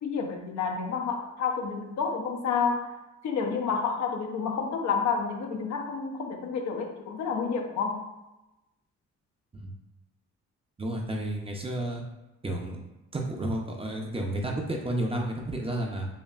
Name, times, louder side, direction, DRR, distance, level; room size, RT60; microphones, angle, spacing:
voice 1, 0.0-3.0 3.2-8.0, left 5 dB, 65° left, 2 dB, 0.7 m, -29 dB
voice 2, 10.8-12.0 12.4-12.8 13.1-16.1, right 1 dB, 20° right, 0 dB, 0.6 m, -31 dB
5.4 x 2.3 x 2.4 m, 1.0 s
cardioid pair, 90°, 30 cm